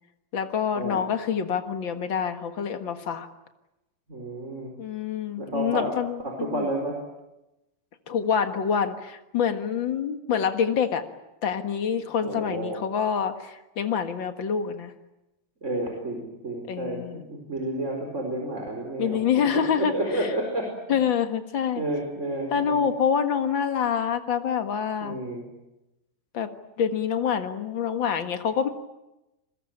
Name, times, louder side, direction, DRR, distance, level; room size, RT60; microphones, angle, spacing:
voice 1, 0.3-3.3 4.8-6.6 8.1-11.0 11.4-14.9 16.7-17.2 19.0-20.3 20.9-21.8 22.5-25.2 26.3-26.5 26.8-28.7, left 7 dB, 55° left, 8 dB, 1.4 m, -26 dB
voice 2, 4.1-4.7 5.4-5.9 6.2-7.0 12.0-12.8 15.6-19.2 19.5-20.7 21.7-22.8 25.0-25.4, right 1 dB, 20° right, 2 dB, 4.5 m, -31 dB
29.0 x 21.5 x 8.9 m, 0.95 s
omnidirectional pair, 4.5 m